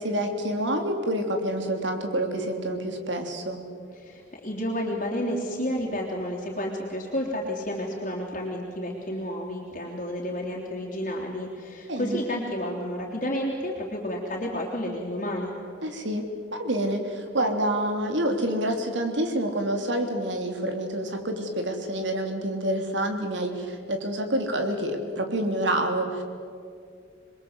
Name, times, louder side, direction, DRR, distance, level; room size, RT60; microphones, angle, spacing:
voice 1, 0.0-3.6 11.9-12.2 15.8-16.3 16.5-26.2, right 1 dB, 90° right, 5 dB, 3.3 m, -27 dB
voice 2, 4.0-15.5, equal, 45° left, -2 dB, 3.4 m, -31 dB
27.5 x 22.0 x 8.1 m, 2.3 s
head